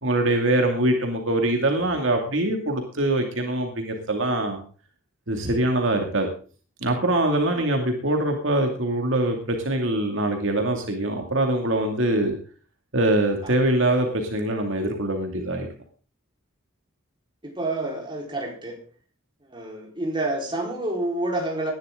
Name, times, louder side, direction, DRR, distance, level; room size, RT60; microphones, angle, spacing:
voice 1, 0.0-4.6 5.3-6.3 6.8-12.4 12.9-15.7, right 1 dB, 60° right, 3 dB, 2.3 m, -23 dB
voice 2, 17.4-18.8 19.5-21.7, right 2 dB, 25° right, 0 dB, 4.3 m, -28 dB
18.5 x 11.5 x 3.8 m, 0.39 s
head